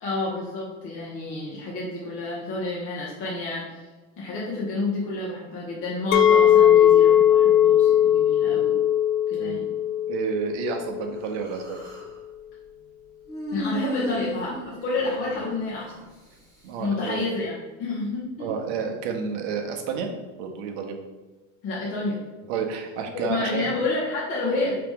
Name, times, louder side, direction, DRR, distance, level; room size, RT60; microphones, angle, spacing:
voice 1, 0.0-3.8 4.2-8.8 9.3-9.7 13.5-15.9 16.8-18.5 21.6-22.2 23.1-24.7, left 3 dB, 30° left, -5 dB, 0.8 m, -29 dB
Chink clink, 6.1-11.3, left 10 dB, 75° left, 0.5 m, -19 dB
voice 2, 10.1-11.8 14.1-14.2 16.6-17.3 18.4-20.1 20.4-21.0 22.5-23.7, right 6 dB, 60° right, 3 dB, 0.8 m, -30 dB
Human voice, 11.2-12.1 13.3-16.0, equal, 10° left, 1.3 m, -34 dB
4.7 x 2.9 x 3.5 m, 1.2 s
supercardioid pair, 150°, 39 cm